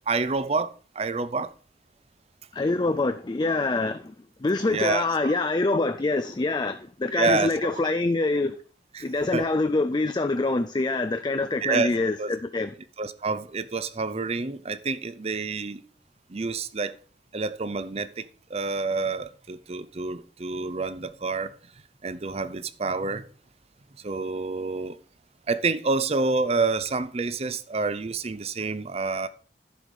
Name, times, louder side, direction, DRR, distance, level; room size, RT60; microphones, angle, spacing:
voice 1, 0.1-1.5 4.7-5.3 7.1-7.7 8.9-9.0 9.3-9.5 11.6-11.9 12.2-12.3 13.0-15.8 16.3-16.9 17.3-21.5 22.0-23.2 24.0-25.0 25.5-29.3, right 4 dB, 35° right, 0.6 m, -28 dB
voice 2, 2.5-4.1 4.4-8.5 9.0-12.7, left 3 dB, 25° left, 0.4 m, -25 dB
11.0 x 4.9 x 5.3 m
head